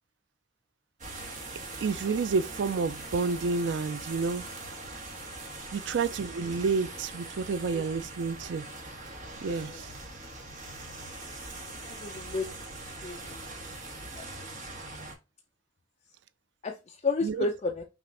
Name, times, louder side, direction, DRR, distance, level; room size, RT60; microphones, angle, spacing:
sound 1, 1.0-15.1, right 2 dB, 40° right, 1.2 m, -42 dB
voice 1, 1.8-4.4 5.7-8.7 9.4-9.9 17.2-17.5, right 4 dB, 65° right, 0.4 m, -29 dB
voice 2, 9.5-9.9 11.8-12.5 13.0-13.4 14.2-14.3 16.6-17.8, left 3 dB, 35° left, 0.5 m, -32 dB
5.9 x 2.5 x 3.2 m
head